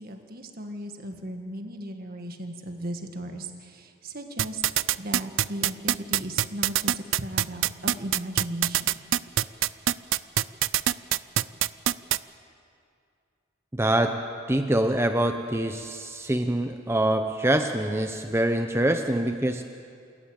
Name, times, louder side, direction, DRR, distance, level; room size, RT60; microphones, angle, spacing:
voice 1, 0.0-4.6 4.9-8.9, right 1 dB, 45° right, 4 dB, 1.8 m, -36 dB
sound 1, 4.4-12.2, right 12 dB, 65° right, 0.5 m, -23 dB
voice 2, 13.7-14.2 14.5-19.6, right 1 dB, 10° right, 6 dB, 0.7 m, -25 dB
28.5 x 14.0 x 8.9 m, 2.4 s
head